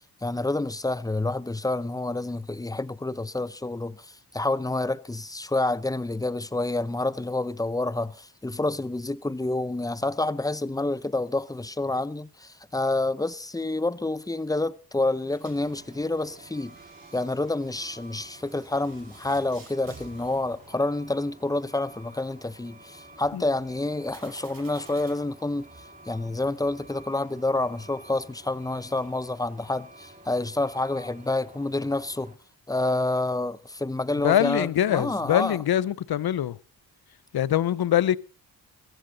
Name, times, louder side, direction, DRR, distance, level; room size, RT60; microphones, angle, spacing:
voice 1, 0.2-16.8 17.1-25.7 26.1-32.3 32.7-35.6, left 2 dB, 10° left, 0.6 m, -28 dB
sound 1, 15.2-21.4 24.1-25.1, right 4 dB, 60° right, 5.8 m, -51 dB
Truck, 15.6-32.3, right 2 dB, 20° right, 2.2 m, -51 dB
voice 2, 34.2-36.6 37.3-38.2, left 11 dB, 65° left, 0.7 m, -23 dB
16.0 x 14.5 x 3.9 m
cardioid pair, 75°, 39 cm